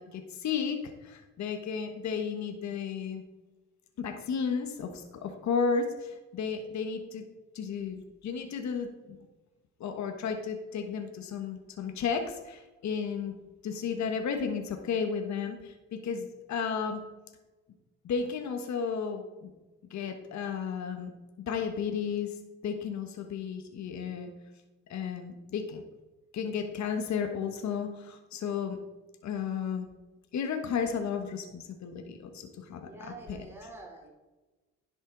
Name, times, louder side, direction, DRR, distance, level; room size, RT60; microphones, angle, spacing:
voice 1, 0.0-3.2 4.0-7.2 7.5-9.2 9.8-13.3 13.6-17.0 18.0-19.5 19.9-21.1 21.5-22.4 22.6-24.3 24.9-25.8 26.3-28.8 29.2-29.9 30.3-33.5, left 6 dB, 65° left, 6 dB, 1.3 m, -33 dB
voice 2, 32.8-34.1, right 2 dB, 10° right, -2 dB, 3.6 m, -46 dB
11.0 x 7.9 x 3.9 m, 1.1 s
cardioid pair, 90°, 30 cm